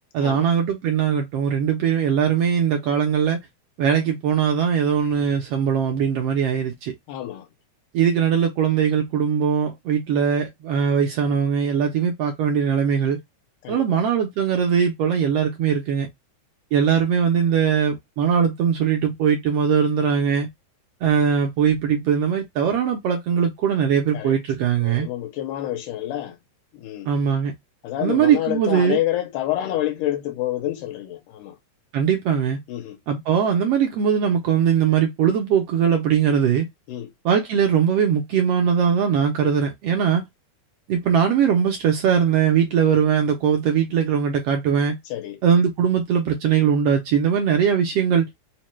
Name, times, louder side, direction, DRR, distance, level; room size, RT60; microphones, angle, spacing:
voice 1, 0.1-3.4 3.8-6.9 7.9-13.2 13.7-16.1 16.7-20.5 21.0-25.1 27.0-27.5 28.0-29.0 31.9-32.6 33.1-36.7 37.2-40.3 40.9-45.0 45.4-48.3, right 7 dB, 80° right, 1.4 m, -20 dB
voice 2, 7.1-7.5 13.6-14.0 24.1-24.4 24.8-26.4 26.7-27.1 27.8-31.6 32.7-33.0 36.9-37.1 45.1-45.4, left 13 dB, 85° left, 2.3 m, -28 dB
4.9 x 2.2 x 3.0 m
omnidirectional pair, 3.6 m